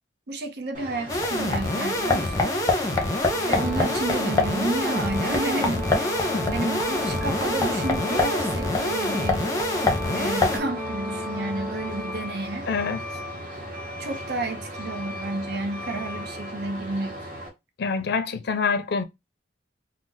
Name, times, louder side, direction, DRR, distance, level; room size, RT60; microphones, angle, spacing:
voice 1, 0.3-2.6 3.4-6.1 6.5-9.5 10.1-12.7 14.0-17.2, right 2 dB, 65° right, 0.6 m, -31 dB
Truck, 0.7-17.5, equal, 50° right, 1.1 m, -36 dB
sound 1, 1.1-10.6, left 2 dB, 20° left, 0.7 m, -25 dB
Brass instrument, 3.3-12.2, left 1 dB, 20° right, 0.5 m, -34 dB
voice 2, 12.7-13.0 17.8-19.0, left 5 dB, 65° left, 0.5 m, -25 dB
2.5 x 2.1 x 3.8 m
head